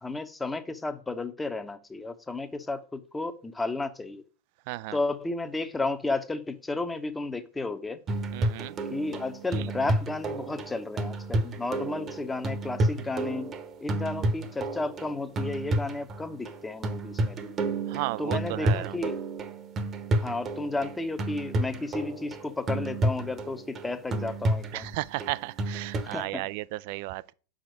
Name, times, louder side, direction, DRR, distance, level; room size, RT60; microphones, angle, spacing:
voice 1, 0.0-4.2 4.9-8.0 8.9-13.5 13.8-17.6 18.2-19.2 20.2-24.9 26.0-26.4, left 3 dB, 10° left, 0.8 m, -33 dB
voice 2, 4.7-5.0 8.3-8.7 17.9-19.0 24.7-27.3, right 19 dB, 45° right, 0.3 m, -34 dB
sound 1, 8.1-26.2, right 2 dB, 25° right, 1.0 m, -30 dB
5.8 x 5.1 x 6.4 m
figure-of-eight pair, 90°, 0 cm